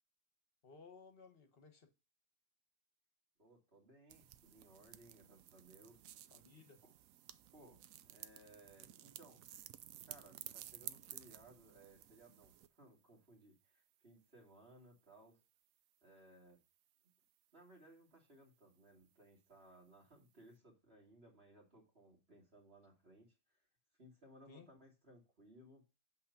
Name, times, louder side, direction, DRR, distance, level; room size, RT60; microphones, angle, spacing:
voice 1, 0.6-1.9 6.3-6.9 24.5-24.7, left 4 dB, 45° left, 1.3 m, -59 dB
voice 2, 3.4-6.0 6.8-6.9 7.5-9.4 10.0-15.4 16.0-16.6 17.5-23.6 24.0-25.8, right 1 dB, 45° right, 2.8 m, -62 dB
sound 1, 4.1-12.7, right 12 dB, 75° right, 1.0 m, -54 dB
8.4 x 4.0 x 5.7 m
omnidirectional pair, 1.5 m